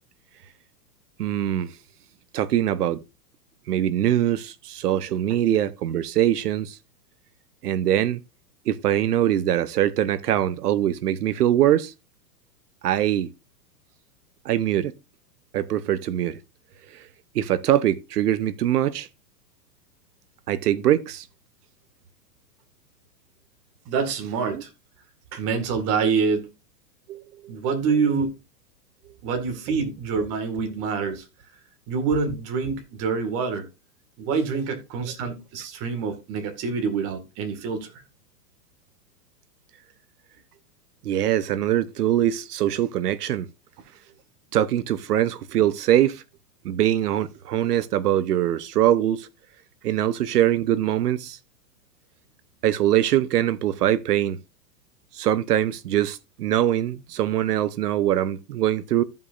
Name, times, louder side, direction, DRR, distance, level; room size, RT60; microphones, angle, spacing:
voice 1, 1.2-1.7 2.3-3.0 3.7-6.8 7.6-8.2 8.7-11.9 12.8-13.3 14.4-14.9 15.5-16.4 16.9-17.1 17.3-19.1 20.5-21.3 24.5-24.6 27.1-27.5 34.5-34.6 41.0-43.5 44.5-46.2 46.6-49.3 49.8-51.4 52.6-54.4 55.1-59.0, right 12 dB, 70° right, 1.0 m, -23 dB
voice 2, 23.9-24.7 25.3-26.5 27.5-28.3 29.2-31.3 31.9-33.7 34.2-37.9, right 5 dB, 30° right, 1.9 m, -26 dB
15.0 x 5.4 x 2.5 m
hypercardioid pair, 150°, 48 cm